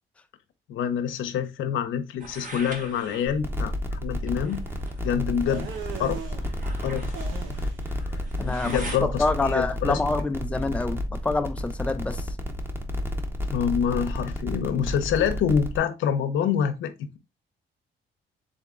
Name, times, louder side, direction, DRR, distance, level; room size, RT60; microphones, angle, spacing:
voice 1, 0.7-4.6 5.0-5.7 6.0-6.2 6.8-7.1 7.6-10.0 13.5-17.2, left 8 dB, 80° left, 0.7 m, -27 dB
sound 1, 2.2-9.0, right 1 dB, 40° right, 1.4 m, -42 dB
sound 2, 3.3-15.8, left 1 dB, 10° right, 1.0 m, -31 dB
sound 3, 5.5-6.4 7.1-9.0, right 6 dB, 90° right, 0.9 m, -39 dB
voice 2, 8.4-12.3, left 3 dB, 5° left, 0.4 m, -27 dB
3.8 x 3.5 x 3.7 m
cardioid pair, 90°, 20 cm